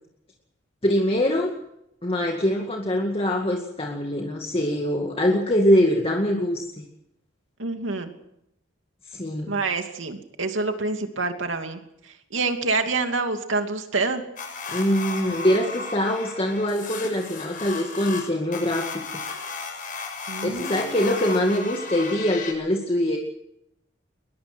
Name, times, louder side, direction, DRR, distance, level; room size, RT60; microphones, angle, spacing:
voice 1, 0.8-1.6 2.0-6.8 9.1-9.6 14.7-19.0 20.4-23.2, equal, 30° left, 1 dB, 2.2 m, -23 dB
voice 2, 7.6-8.1 9.5-14.2 20.3-21.0, right 3 dB, 85° right, 5 dB, 2.8 m, -27 dB
sound 1, 14.4-22.5, left 4 dB, 45° left, 6.2 m, -35 dB
22.0 x 21.5 x 6.2 m, 0.79 s
head